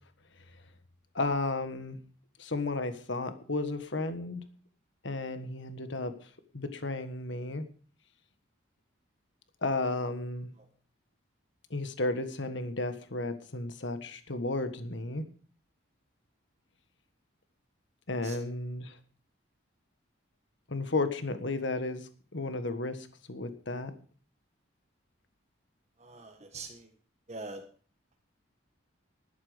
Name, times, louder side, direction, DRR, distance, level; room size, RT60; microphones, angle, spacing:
voice 1, 1.1-2.0 2.4-4.4 5.0-7.7 9.6-10.5 11.7-15.2 18.1-19.0 20.7-23.9, left 2 dB, 65° left, 10 dB, 1.5 m, -33 dB
voice 2, 26.0-26.9 27.3-27.6, right 3 dB, 35° right, 4 dB, 1.4 m, -43 dB
13.0 x 12.0 x 5.1 m, 0.42 s
head